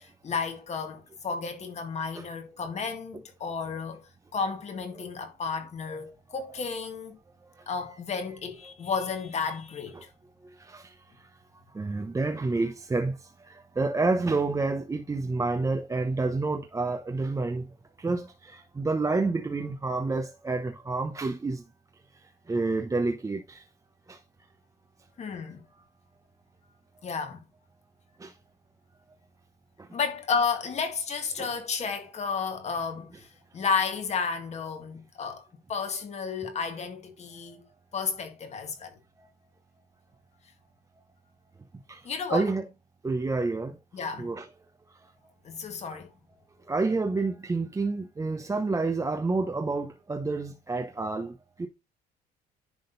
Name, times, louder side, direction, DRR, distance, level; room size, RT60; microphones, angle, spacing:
voice 1, 0.0-7.2 7.7-10.0 25.2-25.6 27.0-27.4 29.9-37.7 37.9-39.0 42.0-42.5 43.9-44.3 45.4-46.1, left 5 dB, 40° left, 2.0 m, -32 dB
voice 2, 10.4-11.3 11.7-17.7 18.0-21.6 22.1-23.6 24.1-24.2 28.2-28.3 29.8-29.9 31.4-31.5 37.5-37.6 39.2-39.3 41.9-42.6 43.0-43.8 44.2-44.5 45.0-45.1 45.8-46.0 46.6-51.7, right 3 dB, 20° right, 0.9 m, -29 dB
10.5 x 3.8 x 4.0 m
cardioid pair, 110°, 17 cm